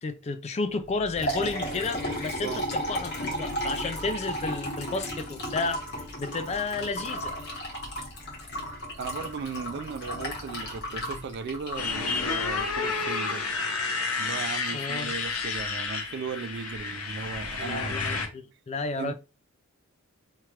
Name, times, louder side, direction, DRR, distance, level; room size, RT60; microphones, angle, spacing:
voice 1, 0.0-5.9 6.2-7.4 14.7-15.1 17.6-19.1, left 3 dB, 30° left, 0.3 m, -32 dB
Liquid, 0.9-12.8, equal, 50° left, 1.2 m, -34 dB
voice 2, 2.3-2.6 9.0-13.4 14.2-18.2 19.0-19.1, right 5 dB, 50° right, 0.3 m, -37 dB
Motorcycle, 11.8-18.3, left 4 dB, 85° left, 0.8 m, -30 dB
3.0 x 2.4 x 2.9 m
head